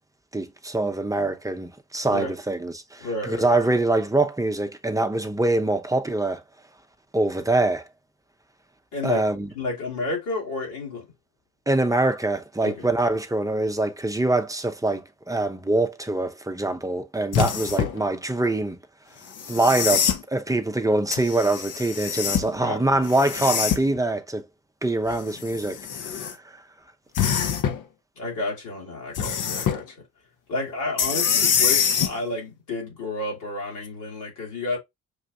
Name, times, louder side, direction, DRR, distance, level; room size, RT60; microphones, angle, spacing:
voice 1, 0.3-6.4 7.1-7.8 9.0-9.5 11.7-18.8 19.5-24.5 24.8-26.4, right 2 dB, 10° right, 0.7 m, -24 dB
voice 2, 3.0-3.5 8.9-9.2 9.5-11.1 12.6-12.9 22.6-23.0 28.2-30.0 30.5-34.8, left 2 dB, 70° left, 2.6 m, -31 dB
sound 1, 17.3-18.0 19.3-20.2 21.1-22.5 23.0-24.0 25.1-26.3 27.2-27.8 29.1-29.8 31.0-32.1 33.8-33.9, left 7 dB, 45° left, 0.9 m, -24 dB
6.3 x 2.5 x 2.4 m
hypercardioid pair, 50°, 43 cm